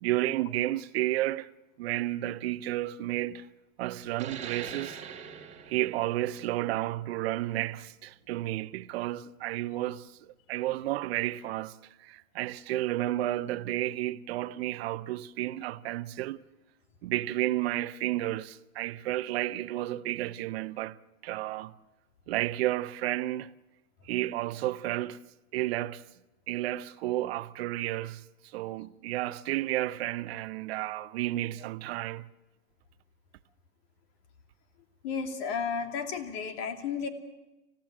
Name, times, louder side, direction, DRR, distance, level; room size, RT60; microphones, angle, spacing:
voice 1, 0.0-1.5 1.8-3.5 3.8-5.0 5.7-16.4 17.0-21.0 21.2-21.7 22.3-23.5 24.0-25.2 25.5-26.0 26.5-32.3, right 15 dB, 50° right, 0.8 m, -32 dB
sound 1, 4.1-9.3, right 7 dB, 15° right, 2.2 m, -44 dB
voice 2, 35.0-37.1, left 6 dB, 50° left, 2.8 m, -33 dB
26.0 x 16.0 x 7.5 m
hypercardioid pair, 120°, 40 cm